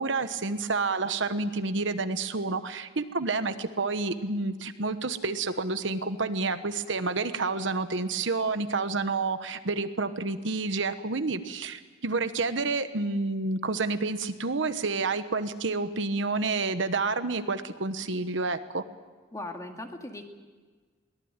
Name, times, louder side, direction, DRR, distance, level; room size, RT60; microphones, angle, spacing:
voice 1, 0.0-18.8, right 3 dB, 65° right, 10 dB, 1.2 m, -29 dB
voice 2, 19.3-20.3, left 2 dB, 15° left, 3 dB, 2.2 m, -38 dB
23.0 x 18.0 x 8.9 m, 1.4 s
head